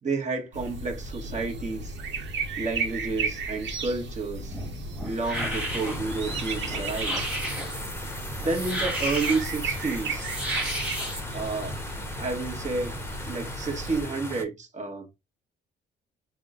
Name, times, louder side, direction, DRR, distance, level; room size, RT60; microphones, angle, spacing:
voice 1, 0.0-2.0 2.6-4.6 5.0-7.2 8.4-10.3 11.3-11.8 12.2-13.0 13.3-15.1, right 3 dB, 35° right, 1.3 m, -30 dB
sound 1, 0.5-14.0, right 4 dB, 65° right, 1.0 m, -35 dB
sound 2, 4.3-11.2, equal, 5° right, 1.6 m, -34 dB
sound 3, 5.3-14.4, left 1 dB, 10° left, 0.8 m, -38 dB
3.5 x 2.2 x 3.7 m
cardioid pair, 90°, 20 cm